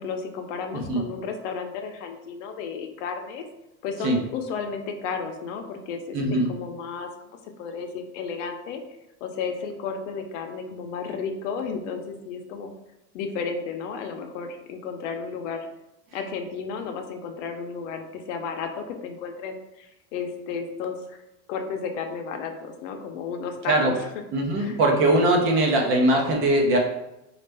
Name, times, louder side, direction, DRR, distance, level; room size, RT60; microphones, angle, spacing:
voice 1, 0.0-3.4 3.8-7.1 7.6-12.7 13.1-15.7 16.1-21.2 21.5-24.1 24.6-24.8, left 5 dB, 85° left, 5 dB, 0.7 m, -33 dB
voice 2, 0.7-1.0 4.0-4.2 6.1-6.5 23.7-23.9 24.3-26.8, right 1 dB, 35° right, 1 dB, 0.7 m, -21 dB
4.2 x 2.4 x 3.3 m, 0.89 s
cardioid pair, 170°, 35 cm